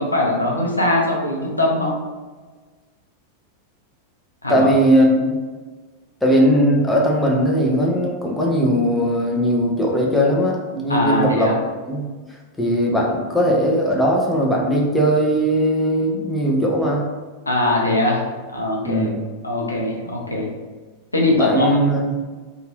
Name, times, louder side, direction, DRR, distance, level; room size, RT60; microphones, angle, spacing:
voice 1, 0.0-1.9 4.4-4.7 10.9-11.5 17.5-18.2 18.5-19.1 19.4-20.5 21.1-21.7, left 1 dB, 80° left, -2 dB, 0.6 m, -21 dB
voice 2, 4.5-5.4 6.2-11.5 11.8-12.1 12.6-17.1 18.8-19.2 21.3-22.0, equal, 5° left, -3 dB, 0.6 m, -19 dB
2.7 x 2.3 x 3.1 m, 1.3 s
figure-of-eight pair, 90°, 0 cm